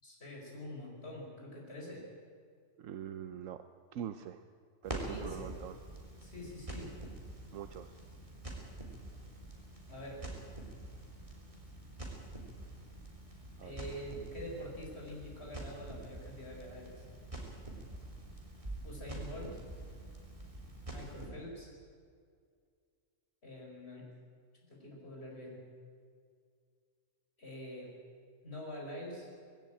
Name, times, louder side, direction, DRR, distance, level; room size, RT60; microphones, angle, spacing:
voice 1, 0.0-2.0 5.0-5.5 6.2-6.9 9.9-10.2 13.6-17.0 18.8-19.6 20.9-21.7 23.4-24.1 24.7-25.6 27.4-27.9 28.4-29.3, left 1 dB, 55° left, -2 dB, 5.4 m, -45 dB
voice 2, 2.8-3.6 3.9-4.4 4.8-5.8 7.5-7.9 13.6-13.7, right 10 dB, 90° right, 9 dB, 1.1 m, -43 dB
Crackle, 4.8-21.3, right 1 dB, 25° right, 3.4 m, -46 dB
19.5 x 16.5 x 8.9 m, 2.2 s
omnidirectional pair, 1.3 m